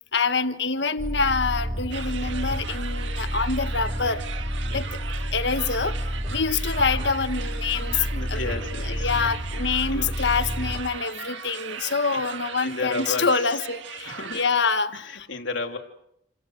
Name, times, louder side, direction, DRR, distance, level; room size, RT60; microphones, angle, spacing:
voice 1, 0.1-4.2 4.7-4.9 5.1-6.0 6.3-15.3, left 4 dB, 65° left, 1.5 m, -26 dB
sound 1, 1.0-10.8, equal, 40° right, 4.2 m, -30 dB
sound 2, 1.9-14.5, right 6 dB, 80° right, 1.8 m, -38 dB
voice 2, 8.1-9.1 9.9-10.1 12.1-12.2 12.6-13.6 14.1-14.5 14.9-15.8, left 3 dB, 80° left, 3.5 m, -32 dB
30.0 x 26.5 x 6.6 m
head